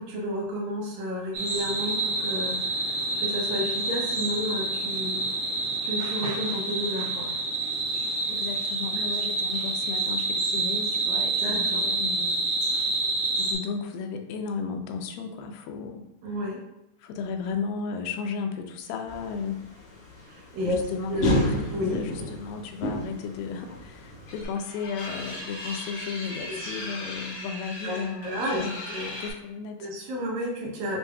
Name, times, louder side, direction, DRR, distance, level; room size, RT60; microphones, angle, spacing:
voice 1, 0.0-5.2 5.8-7.3 11.4-11.8 16.2-16.6 20.3-20.8 21.1-21.4 21.7-22.0 26.5-26.7 27.8-28.7 28.9-29.1 29.8-31.0, left 1 dB, 75° right, -2 dB, 1.8 m, -31 dB
sound 1, 1.3-13.5, right 2 dB, 90° right, 1.0 m, -28 dB
voice 2, 8.3-12.4 13.4-16.1 17.0-19.7 20.6-29.9, left 5 dB, 90° left, 4 dB, 2.3 m, -34 dB
sound 2, 19.1-24.5, left 1 dB, 50° left, 1.7 m, -31 dB
sound 3, 24.3-29.3, left 1 dB, 65° left, 2.5 m, -38 dB
6.9 x 2.6 x 2.2 m, 0.89 s
omnidirectional pair, 4.0 m